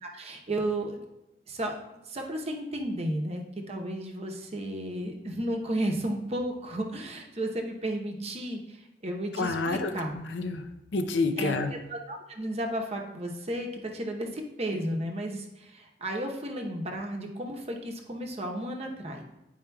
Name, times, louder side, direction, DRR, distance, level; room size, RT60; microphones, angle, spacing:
voice 1, 0.0-1.0 1.5-1.7 2.1-10.1 11.4-19.2, right 1 dB, 35° right, 2 dB, 0.8 m, -33 dB
voice 2, 9.3-11.7, left 3 dB, 75° left, 7 dB, 0.6 m, -29 dB
9.7 x 4.9 x 2.3 m, 0.93 s
head